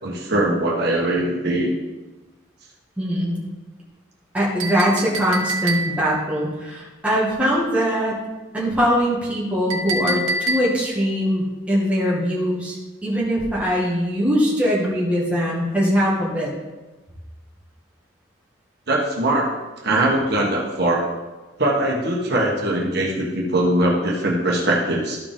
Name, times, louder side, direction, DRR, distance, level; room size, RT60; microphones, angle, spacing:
voice 1, 0.0-1.7 10.0-10.2 18.9-19.5 19.8-21.0 21.6-25.2, right 1 dB, 55° right, -3 dB, 1.4 m, -21 dB
voice 2, 3.0-3.5 4.3-8.2 8.5-12.8 13.0-16.5, equal, 5° right, -6 dB, 1.8 m, -21 dB
Chink clink, 4.6-6.2 9.7-11.0, right 1 dB, 85° right, 1.1 m, -26 dB
12.5 x 4.8 x 3.7 m, 1.2 s
head